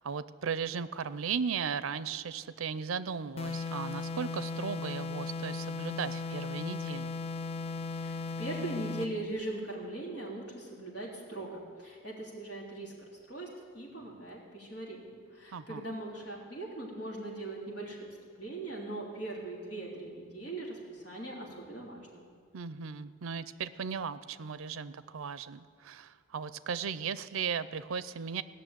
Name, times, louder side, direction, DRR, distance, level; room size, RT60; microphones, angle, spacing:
voice 1, 0.0-7.1 15.5-15.9 22.5-28.4, right 6 dB, 90° right, 15 dB, 0.5 m, -36 dB
sound 1, 3.4-9.2, left 4 dB, 30° left, 0.4 m, -37 dB
voice 2, 7.9-12.9 13.3-18.1 18.4-22.3, right 2 dB, 55° left, -4 dB, 3.5 m, -40 dB
16.5 x 6.5 x 9.1 m, 2.1 s
head